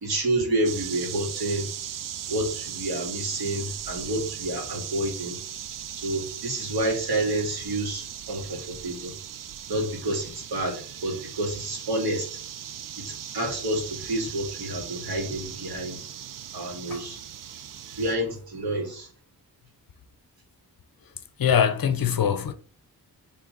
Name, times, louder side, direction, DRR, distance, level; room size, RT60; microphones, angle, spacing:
voice 1, 0.0-1.7 2.3-5.4 5.9-9.1 9.7-12.4 13.0-16.1 16.5-17.2 18.0-19.1, right 1 dB, 75° right, 2.4 m, -29 dB
sound 1, 0.6-18.1, right 9 dB, 60° right, 0.5 m, -38 dB
voice 2, 21.4-22.5, left 8 dB, 65° left, 0.8 m, -22 dB
7.2 x 3.5 x 4.0 m
wide cardioid pair, 170°, 38 cm